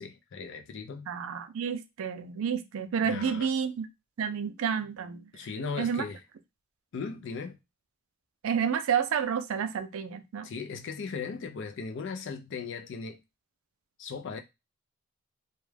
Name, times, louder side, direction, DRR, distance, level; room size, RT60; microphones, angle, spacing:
voice 1, 0.0-1.1 3.0-3.5 5.3-6.2 6.9-7.6 10.4-13.2 14.0-14.4, left 5 dB, 60° left, 0.4 m, -37 dB
voice 2, 1.1-3.9 4.2-5.3 5.8-6.1 8.4-10.5, right 7 dB, 70° right, 0.4 m, -30 dB
2.3 x 2.1 x 3.2 m
head